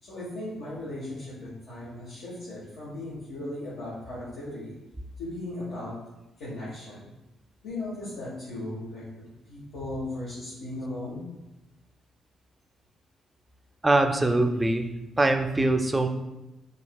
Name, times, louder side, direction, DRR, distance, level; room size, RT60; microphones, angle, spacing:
voice 1, 0.0-4.7 5.2-5.9 6.4-7.0 7.6-9.0 9.5-11.2, left 1 dB, 80° left, -8 dB, 1.3 m, -37 dB
voice 2, 13.8-14.9 15.2-16.1, right 2 dB, 15° right, 6 dB, 0.4 m, -23 dB
5.3 x 3.2 x 2.3 m, 1.0 s
cardioid pair, 90°, 0 cm